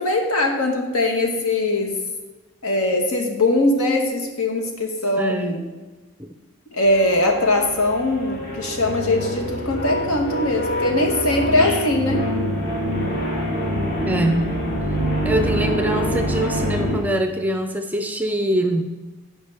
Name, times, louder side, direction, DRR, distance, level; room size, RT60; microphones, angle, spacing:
voice 1, 0.0-1.9 2.6-5.6 6.7-12.2, left 2 dB, 75° left, 2 dB, 1.4 m, -21 dB
voice 2, 5.2-5.6 6.2-6.3 14.0-14.5 15.2-18.9, right 1 dB, 5° right, 6 dB, 0.4 m, -23 dB
sound 1, 6.8-17.0, equal, 40° left, 2.1 m, -25 dB
15.5 x 5.2 x 3.4 m, 1.2 s
head